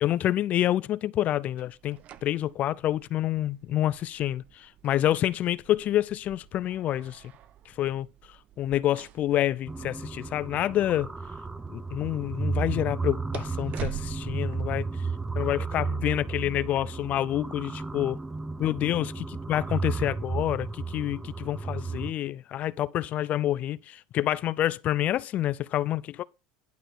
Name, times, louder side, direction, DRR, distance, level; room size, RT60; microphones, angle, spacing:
voice 1, 0.0-7.2 7.7-8.1 8.6-11.1 11.7-14.9 15.4-18.2 18.6-26.2, left 13 dB, 45° left, 0.5 m, -28 dB
sound 1, 1.6-15.5, right 12 dB, 45° right, 0.8 m, -47 dB
sound 2, 9.7-22.1, right 4 dB, 10° right, 0.8 m, -33 dB
11.5 x 4.0 x 6.8 m
supercardioid pair, 105°, 4 cm